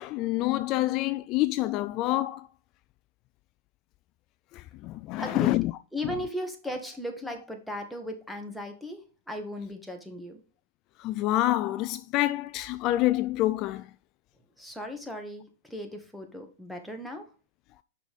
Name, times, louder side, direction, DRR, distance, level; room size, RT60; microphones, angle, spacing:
voice 1, 0.0-2.5 4.5-5.7 6.0-6.1 11.0-13.9, left 16 dB, 40° left, 0.3 m, -27 dB
voice 2, 5.2-5.6 5.9-10.4 14.6-17.2, left 1 dB, ahead, 1.7 m, -37 dB
6.0 x 5.7 x 5.3 m
hypercardioid pair, 125°, 0 cm